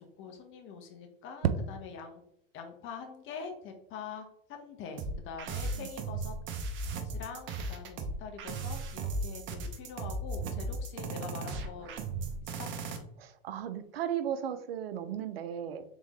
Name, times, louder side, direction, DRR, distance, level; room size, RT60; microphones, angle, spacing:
voice 1, 0.0-2.2 2.5-6.3 7.0-11.9 12.4-12.7, left 6 dB, 45° left, 4 dB, 1.0 m, -44 dB
sound 1, 5.0-13.0, right 3 dB, 40° right, 0.8 m, -36 dB
voice 2, 13.2-15.8, right 9 dB, 85° right, 10 dB, 0.6 m, -36 dB
3.7 x 3.6 x 3.1 m, 0.70 s
hypercardioid pair, 95°, 29 cm